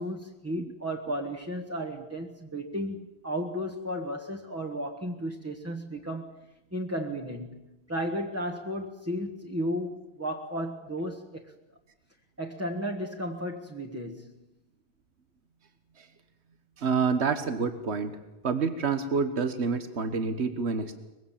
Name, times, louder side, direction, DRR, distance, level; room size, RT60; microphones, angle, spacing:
voice 1, 0.0-6.4 6.7-11.5 12.4-14.4, equal, 15° right, 2 dB, 1.4 m, -34 dB
voice 2, 16.8-18.2 18.4-21.0, right 5 dB, 85° right, 9 dB, 1.5 m, -28 dB
23.5 x 22.0 x 7.4 m, 0.99 s
omnidirectional pair, 1.1 m